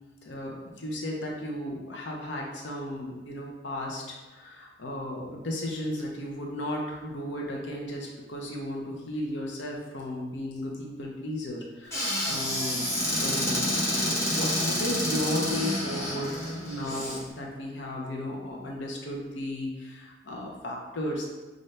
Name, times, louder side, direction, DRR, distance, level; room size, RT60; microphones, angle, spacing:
voice 1, 0.3-12.8 13.2-21.3, left 1 dB, 80° left, -1 dB, 0.7 m, -35 dB
Squeak / Cupboard open or close, 11.9-17.2, left 1 dB, 15° left, 1.2 m, -28 dB
5.4 x 2.5 x 3.2 m, 1.2 s
head